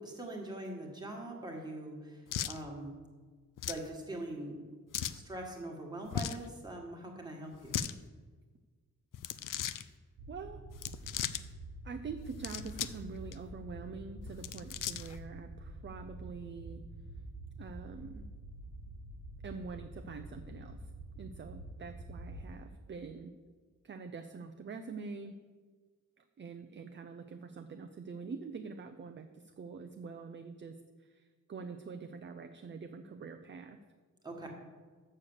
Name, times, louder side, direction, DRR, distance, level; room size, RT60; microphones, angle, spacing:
voice 1, 0.0-2.9 3.7-4.6 5.1-7.7 34.2-34.5, right 1 dB, 10° right, 0 dB, 1.6 m, -42 dB
sound 1, 2.3-2.6 3.6-3.9 4.9-5.2 6.1-6.5 7.5-7.9 9.1-9.8 10.7-11.4 12.3-13.0 13.3-13.4 14.3-15.2, left 10 dB, 70° left, 0.5 m, -37 dB
sound 2, 10.2-22.5, right 1 dB, 70° right, 1.2 m, -47 dB
voice 2, 10.3-10.6 11.8-16.8 17.6-18.3 19.4-20.9 21.2-23.3 23.8-25.4 26.2-33.8, right 5 dB, 35° right, 7 dB, 0.4 m, -45 dB
6.8 x 6.5 x 7.2 m, 1.5 s
wide cardioid pair, 150°, 33 cm